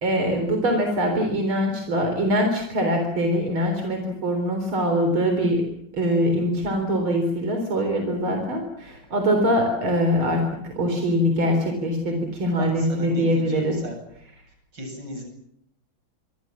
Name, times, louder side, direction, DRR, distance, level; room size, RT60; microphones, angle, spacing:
voice 1, 0.0-5.6 5.9-13.8, equal, 90° right, 4 dB, 4.7 m, -23 dB
voice 2, 12.6-14.0 14.7-15.3, equal, 60° right, 4 dB, 8.8 m, -36 dB
26.0 x 24.5 x 7.4 m, 0.76 s
omnidirectional pair, 2.2 m